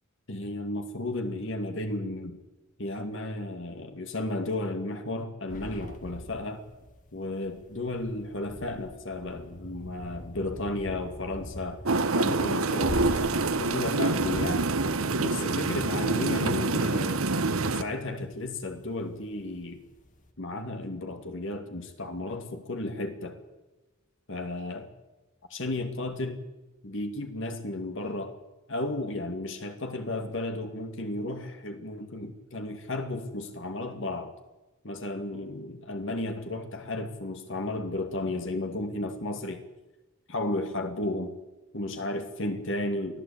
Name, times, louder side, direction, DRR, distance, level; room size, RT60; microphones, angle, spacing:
voice 1, 0.3-2.4 2.8-6.6 7.1-11.8 12.1-13.3 13.6-14.7 15.2-17.2 17.7-19.8 20.4-23.4 24.3-24.9 25.5-26.4 26.8-28.4 28.7-34.3 34.8-39.6 40.3-41.3 41.7-43.2, left 2 dB, 60° left, 6 dB, 2.3 m, -33 dB
sound 1, 5.5-17.9 18.2-18.4 18.8-19.6 19.9-20.3, left 1 dB, 40° left, 2.1 m, -42 dB
sound 2, 11.8-17.8, right 3 dB, 75° right, 1.2 m, -26 dB
24.0 x 15.5 x 8.7 m, 1.1 s
head